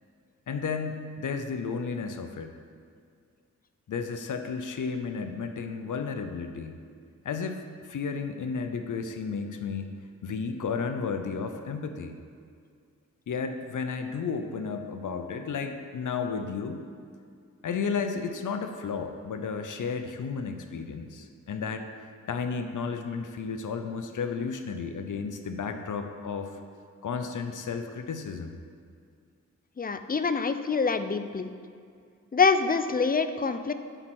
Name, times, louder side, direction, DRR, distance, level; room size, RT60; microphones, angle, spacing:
voice 1, 0.5-2.5 3.9-6.8 7.2-9.9 10.2-12.2 13.3-16.8 17.6-21.9 22.3-26.6 27.0-28.6, left 5 dB, 70° left, 7 dB, 0.7 m, -33 dB
voice 2, 29.8-31.5 32.3-33.7, left 4 dB, 30° left, 10 dB, 0.5 m, -25 dB
7.9 x 4.5 x 6.2 m, 2.2 s
cardioid pair, 45°, 32 cm